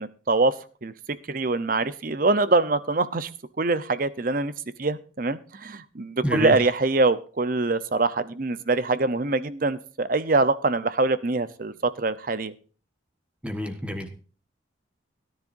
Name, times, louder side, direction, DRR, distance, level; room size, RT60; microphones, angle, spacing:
voice 1, 0.0-3.3 3.6-4.5 4.8-12.5, right 3 dB, 45° right, 14 dB, 0.8 m, -24 dB
voice 2, 6.2-6.5 13.4-14.1, equal, 5° right, 6 dB, 1.4 m, -28 dB
17.0 x 10.5 x 2.6 m, 0.38 s
head